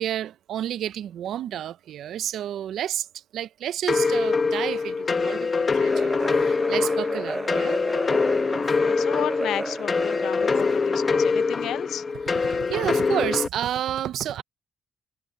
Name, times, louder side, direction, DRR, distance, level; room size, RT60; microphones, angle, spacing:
voice 1, 0.0-3.1 3.3-7.8 12.3-14.4, right 11 dB, 85° right, 0.5 m, -30 dB
sound 1, 3.9-13.5, left 4 dB, 35° left, 1.1 m, -24 dB
sound 2, 5.8-11.3, right 2 dB, 15° right, 0.8 m, -33 dB
voice 2, 7.3-7.7 8.5-12.0, left 11 dB, 90° left, 0.7 m, -33 dB
cardioid pair, 110°, 0 cm